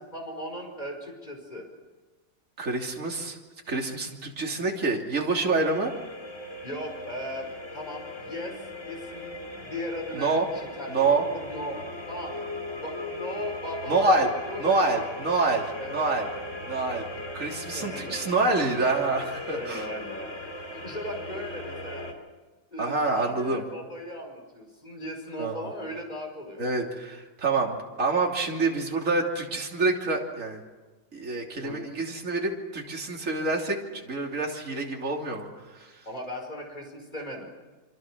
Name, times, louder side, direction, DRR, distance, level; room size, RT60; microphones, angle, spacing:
voice 1, 0.1-1.7 6.6-8.6 8.8-9.3 9.6-11.8 12.1-12.4 12.8-14.0 14.5-14.7 15.8-16.1 17.7-18.2 19.5-20.3 20.7-22.0 22.7-26.8 31.6-31.8 36.0-37.5, equal, 20° left, 2 dB, 5.2 m, -37 dB
voice 2, 2.6-3.4 3.7-5.9 10.1-10.5 10.9-11.2 13.9-14.3 14.6-16.3 16.7-17.0 17.3-19.8 22.8-23.6 25.4-25.7 26.6-30.6 31.1-36.0, right 3 dB, 40° right, 0 dB, 3.4 m, -27 dB
sound 1, 5.5-22.1, left 2 dB, 40° left, 3.3 m, -38 dB
27.5 x 25.0 x 6.3 m, 1.3 s
omnidirectional pair, 2.1 m